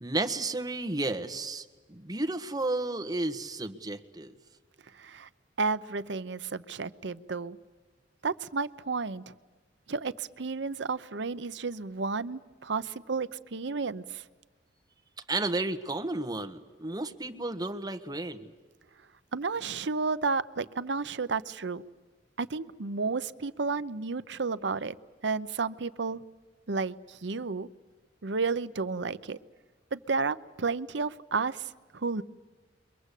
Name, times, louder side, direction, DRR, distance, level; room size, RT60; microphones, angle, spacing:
voice 1, 0.0-4.3 15.3-18.5, right 2 dB, 20° right, 8 dB, 1.4 m, -32 dB
voice 2, 4.9-5.3 5.6-7.6 8.2-9.3 9.9-14.2 19.3-21.8 22.4-24.9 25.2-26.2 26.7-27.7 28.2-29.4 29.9-32.2, right 4 dB, 70° right, 14 dB, 0.8 m, -32 dB
29.5 x 23.0 x 8.4 m, 1.3 s
head